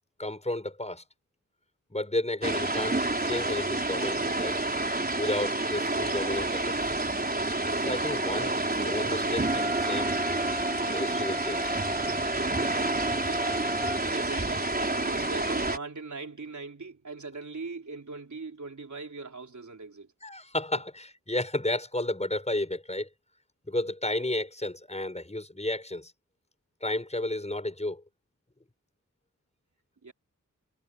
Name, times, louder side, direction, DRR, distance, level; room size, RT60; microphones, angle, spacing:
voice 1, 0.2-1.0 1.9-4.6 5.2-6.9 7.9-10.1 10.8-11.7 20.2-23.1 23.7-26.1 26.8-28.0, left 1 dB, 20° left, 5.6 m, -32 dB
sound 1, 2.4-15.8, right 2 dB, 30° right, 4.1 m, -29 dB
Wind instrument woodwind instrument, 9.4-14.0, equal, 10° right, 1.8 m, -36 dB
voice 2, 13.1-20.1 30.0-30.1, right 4 dB, 65° right, 4.0 m, -41 dB
wide cardioid pair, 75°, 32 cm